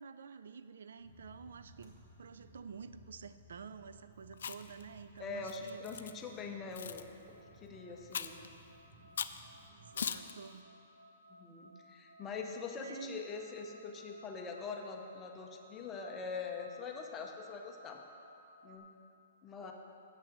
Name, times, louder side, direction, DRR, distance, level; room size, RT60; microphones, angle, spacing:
voice 1, 0.0-5.8 9.7-10.7 12.8-13.2, right 5 dB, 80° right, 12 dB, 0.4 m, -49 dB
sound 1, 1.0-10.1, right 1 dB, 15° right, 1.3 m, -60 dB
Chewing mastication, 4.3-4.8 5.5-6.1 6.7-7.0 8.1-8.5 9.2-9.4 10.0-10.3, left 7 dB, 70° left, 0.4 m, -39 dB
voice 2, 5.2-7.1 7.5-8.4 11.3-18.0 18.6-18.9 19.4-19.7, left 4 dB, 15° left, 2 dB, 0.5 m, -43 dB
sound 2, 6.4-18.8, left 1 dB, 50° right, 0.9 m, -59 dB
7.6 x 5.9 x 7.8 m, 2.7 s
hypercardioid pair, 175°, 0 cm